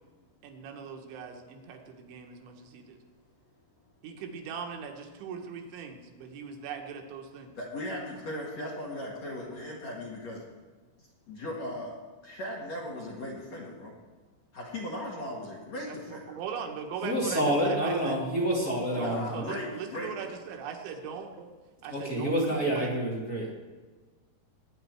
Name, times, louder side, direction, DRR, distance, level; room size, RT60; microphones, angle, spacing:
voice 1, 0.4-3.0 4.0-7.5 15.9-18.2 19.0-21.5 21.8-23.0, right 6 dB, 80° right, 2 dB, 3.7 m, -40 dB
voice 2, 7.6-10.5 11.3-12.0 12.2-13.9 14.5-16.4 19.0-20.1, left 1 dB, 50° left, -4 dB, 2.5 m, -37 dB
voice 3, 17.0-19.5 21.9-23.5, right 1 dB, 25° left, -5 dB, 2.7 m, -28 dB
20.5 x 9.4 x 4.6 m, 1.3 s
omnidirectional pair, 5.3 m